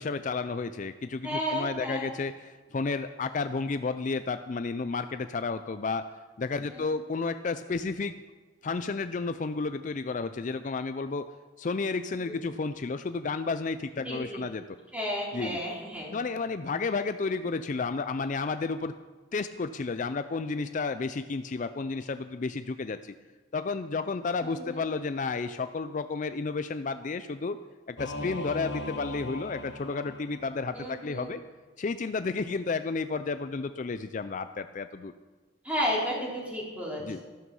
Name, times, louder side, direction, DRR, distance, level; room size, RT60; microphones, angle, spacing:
voice 1, 0.0-6.1 6.4-8.2 8.6-11.3 11.6-14.6 15.3-15.6 16.1-18.9 19.3-23.1 23.5-27.6 27.9-31.4 31.8-35.1 37.0-37.2, left 4 dB, 40° left, 10 dB, 0.4 m, -32 dB
voice 2, 1.2-2.1 6.7-6.8 12.2-12.3 14.0-14.4 14.9-16.2 24.4-24.8 30.7-31.3 35.6-37.2, equal, 10° right, -4 dB, 3.8 m, -33 dB
Singing / Musical instrument, 28.0-30.8, left 1 dB, 65° left, 1.3 m, -39 dB
14.0 x 12.5 x 5.4 m, 1.3 s
head